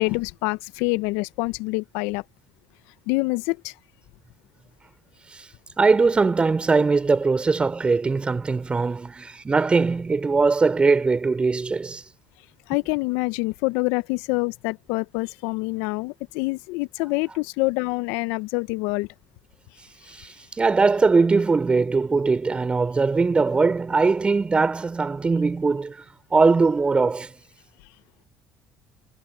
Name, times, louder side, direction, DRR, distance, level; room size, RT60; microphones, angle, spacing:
voice 1, 0.0-2.2 3.1-3.7 12.7-19.1, left 25 dB, 75° left, 1.0 m, -26 dB
voice 2, 5.8-12.0 20.2-26.0 26.3-27.3, right 4 dB, 25° right, 4.1 m, -21 dB
hypercardioid pair, 60°, 4 cm